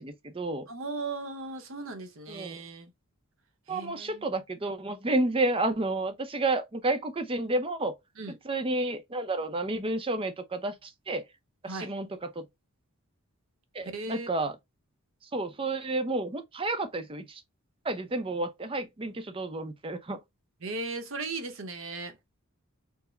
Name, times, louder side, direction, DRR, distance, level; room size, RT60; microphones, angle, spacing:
voice 1, 0.0-0.7 2.3-2.6 3.7-7.9 8.4-11.2 11.6-12.4 13.7-14.5 15.3-17.4 17.8-20.2, right 2 dB, 25° right, 0.5 m, -31 dB
voice 2, 0.7-2.9 3.7-4.3 8.2-8.4 11.7-11.9 13.8-14.3 20.6-22.2, right 3 dB, 60° right, 0.9 m, -37 dB
4.6 x 2.1 x 3.2 m
head